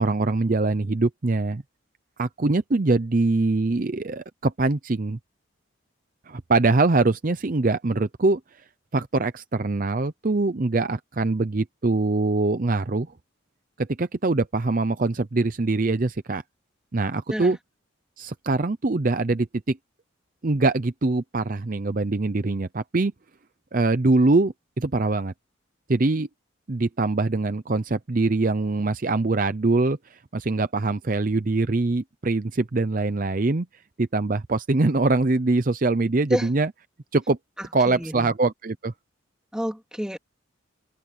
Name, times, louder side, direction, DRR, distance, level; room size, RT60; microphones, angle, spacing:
voice 1, 0.0-1.6 2.2-5.2 6.3-8.4 8.9-13.1 13.8-16.4 16.9-17.6 18.2-19.8 20.4-23.1 23.7-25.3 25.9-26.3 26.7-33.7 34.0-36.7 37.1-37.4 37.7-38.9, right 3 dB, 40° right, 0.6 m, -23 dB
voice 2, 37.6-38.3 39.5-40.2, equal, 5° right, 2.3 m, -29 dB
open air
head